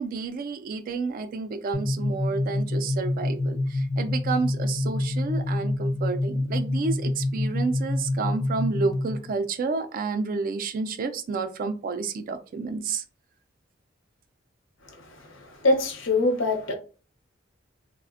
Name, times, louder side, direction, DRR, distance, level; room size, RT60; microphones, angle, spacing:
voice 1, 0.0-13.0, right 4 dB, 45° right, 0.3 m, -30 dB
sound 1, 1.7-9.3, left 2 dB, 20° left, 0.4 m, -27 dB
voice 2, 15.4-16.7, left 2 dB, 75° left, 0.7 m, -23 dB
3.2 x 2.0 x 2.4 m
head